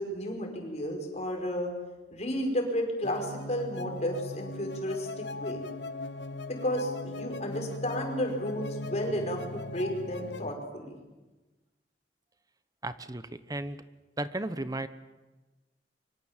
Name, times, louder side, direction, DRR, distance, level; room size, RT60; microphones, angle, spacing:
voice 1, 0.0-1.7 2.1-5.6 6.5-11.0, equal, 40° left, 2 dB, 5.6 m, -32 dB
sound 1, 3.0-10.5, left 2 dB, 80° left, 1.0 m, -39 dB
voice 2, 12.8-13.8 14.2-14.9, right 2 dB, 20° right, 12 dB, 0.9 m, -34 dB
24.5 x 24.5 x 7.4 m, 1.2 s
head